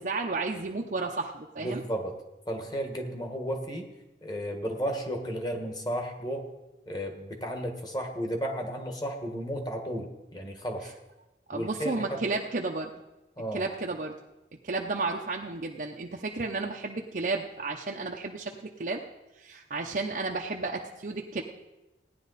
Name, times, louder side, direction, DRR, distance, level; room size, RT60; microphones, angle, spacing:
voice 1, 0.0-1.8 11.5-12.9 13.5-14.1 14.6-19.0 19.4-21.4, right 3 dB, 50° right, 0 dB, 0.7 m, -32 dB
voice 2, 1.6-2.2 2.5-3.9 4.2-6.5 6.9-10.9 11.5-12.2 13.4-13.6, equal, 20° left, 3 dB, 1.5 m, -33 dB
17.0 x 10.5 x 4.1 m, 1.0 s
head